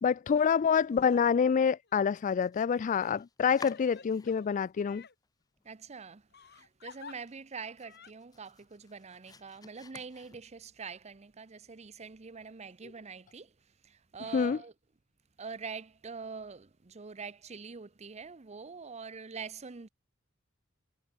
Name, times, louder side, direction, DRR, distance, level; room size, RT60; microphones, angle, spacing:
voice 1, 0.0-5.0 14.3-14.6, left 6 dB, 40° left, 0.3 m, -27 dB
Crying sobbing, 0.9-1.2 1.8-2.0 3.0-5.1 6.3-7.2 7.8-8.1, left 5 dB, 55° left, 3.6 m, -52 dB
Domestic sounds home sounds, 2.1-4.7 5.0-5.7 6.1-6.2 6.6-6.7 7.1-10.8, left 4 dB, 20° left, 0.7 m, -52 dB
voice 2, 5.6-6.3 6.5-13.5 13.8-14.7 15.4-19.9, right 5 dB, 35° right, 0.7 m, -44 dB
head